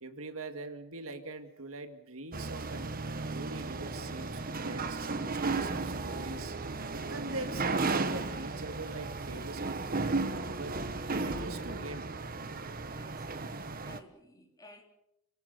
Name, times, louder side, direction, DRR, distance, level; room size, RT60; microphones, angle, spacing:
voice 1, 0.0-2.9 3.3-6.6 7.1-10.8 11.1-12.1, right 2 dB, 70° right, 8 dB, 2.1 m, -43 dB
Organ, 2.3-13.2, right 2 dB, 55° left, 4.5 m, -55 dB
sound 1, 2.3-14.0, right 3 dB, 40° right, 1.2 m, -35 dB
voice 2, 12.9-14.8, left 1 dB, 15° left, 2 dB, 3.6 m, -56 dB
29.5 x 17.5 x 6.7 m, 0.82 s
head